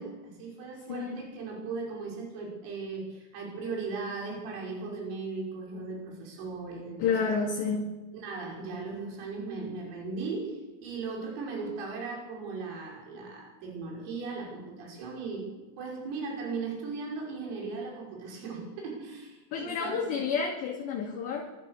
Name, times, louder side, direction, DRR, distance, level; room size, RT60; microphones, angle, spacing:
voice 1, 0.0-7.3 8.1-20.0, right 4 dB, 75° right, -1 dB, 8.5 m, -37 dB
voice 2, 0.9-1.2 7.0-7.9 19.5-21.5, left 5 dB, 60° left, 0 dB, 4.2 m, -30 dB
26.0 x 23.5 x 6.8 m, 1.2 s
omnidirectional pair, 6.0 m